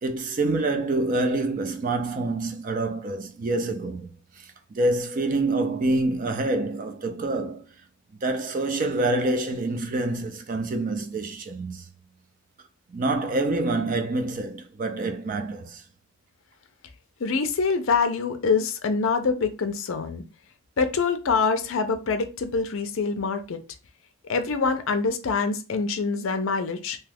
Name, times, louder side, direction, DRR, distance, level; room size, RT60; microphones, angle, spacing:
voice 1, 0.0-7.6 8.2-11.9 12.9-15.8, right 2 dB, 35° right, 0.4 m, -27 dB
voice 2, 17.2-20.2 20.8-23.6 24.2-27.0, left 4 dB, 60° left, 0.4 m, -25 dB
2.8 x 2.3 x 3.3 m
head